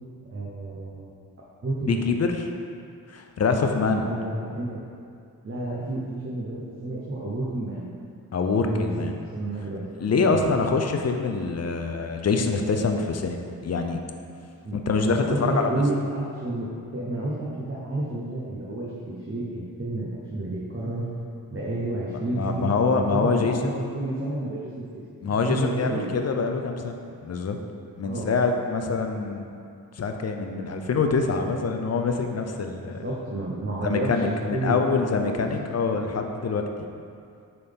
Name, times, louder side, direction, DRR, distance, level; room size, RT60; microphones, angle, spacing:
voice 1, 0.3-1.1 1.6-2.1 4.0-4.8 5.4-7.9 8.6-9.9 10.3-10.5 14.6-14.8 15.1-21.0 21.5-24.8 25.5-26.1 28.0-28.3 33.0-35.4, right 2 dB, 35° right, -6 dB, 0.9 m, -30 dB
voice 2, 1.8-2.5 3.1-4.1 8.3-9.1 10.0-14.0 14.9-15.7 22.1-23.8 25.2-27.0 27.2-27.6 28.0-29.5 29.9-33.0 33.8-36.6, left 4 dB, 45° left, 4 dB, 0.6 m, -25 dB
6.8 x 4.0 x 3.6 m, 2.4 s
cardioid pair, 85°, 35 cm